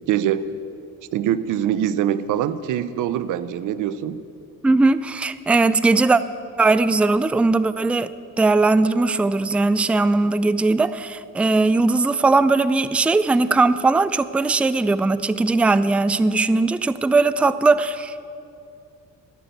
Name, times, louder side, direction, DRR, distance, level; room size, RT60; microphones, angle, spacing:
voice 1, 0.1-0.5 1.1-4.2, right 10 dB, 85° right, 15 dB, 0.6 m, -23 dB
voice 2, 4.6-6.2 6.6-8.1 8.4-18.2, right 3 dB, 5° right, 14 dB, 0.3 m, -19 dB
14.5 x 6.8 x 9.0 m, 2.6 s
cardioid pair, 90°, 30 cm